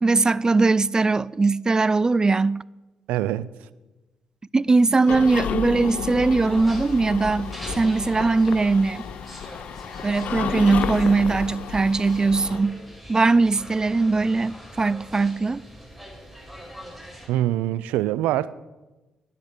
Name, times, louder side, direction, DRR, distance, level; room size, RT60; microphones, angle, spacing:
voice 1, 0.0-2.6 4.5-9.0 10.0-12.8 13.1-15.6, right 3 dB, 30° right, 0.4 m, -20 dB
voice 2, 3.1-3.5 17.3-18.5, right 14 dB, 85° right, 0.5 m, -24 dB
sound 1, 5.1-12.6, left 7 dB, 70° left, 0.7 m, -31 dB
sound 2, 6.1-17.3, equal, ahead, 5.7 m, -42 dB
10.5 x 10.0 x 8.2 m
supercardioid pair, 50°, 2 cm